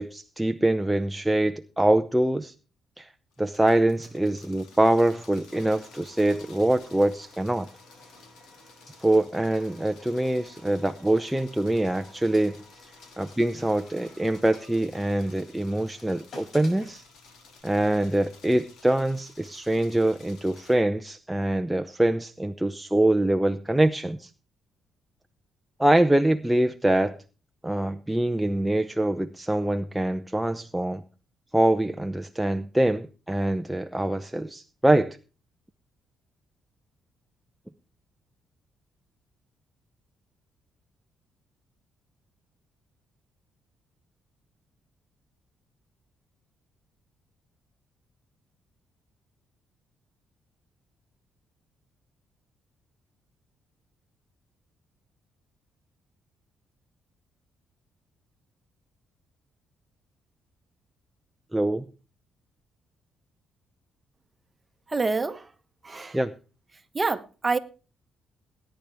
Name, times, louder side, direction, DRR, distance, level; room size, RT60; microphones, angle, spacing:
voice 1, 0.0-2.5 3.0-3.1 3.4-7.7 9.0-12.6 13.2-17.0 17.6-24.3 25.8-27.2 27.6-31.0 31.5-35.2 61.5-61.9 66.1-66.3, right 1 dB, 5° right, 0.7 m, -24 dB
sound 1, 3.3-20.8, left 4 dB, 80° left, 3.9 m, -54 dB
sound 2, 4.9-17.6, left 2 dB, 55° left, 6.8 m, -53 dB
voice 2, 64.9-65.5 65.8-66.2 66.9-67.6, right 3 dB, 25° right, 1.3 m, -27 dB
19.0 x 10.5 x 3.5 m
cardioid pair, 90°, 0 cm